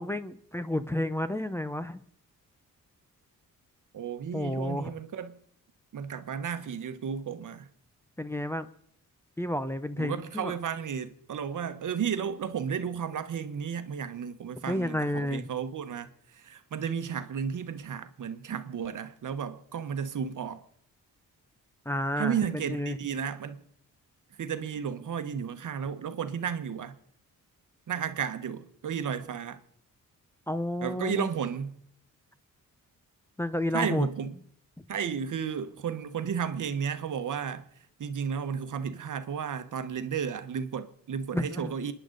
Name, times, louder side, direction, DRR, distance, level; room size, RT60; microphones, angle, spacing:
voice 1, 0.0-2.0 4.3-4.9 8.2-8.7 9.4-10.5 14.7-15.5 21.9-22.3 22.7-23.0 30.5-31.3 33.4-34.1 41.3-41.7, left 1 dB, 5° left, 0.7 m, -31 dB
voice 2, 3.9-5.4 5.9-7.7 10.0-20.6 22.2-23.6 24.4-27.0 27.9-29.6 30.8-31.8 33.7-34.4 34.9-37.6 38.0-41.9, right 7 dB, 60° right, 1.1 m, -33 dB
28.0 x 10.5 x 3.9 m
cardioid pair, 90°, 34 cm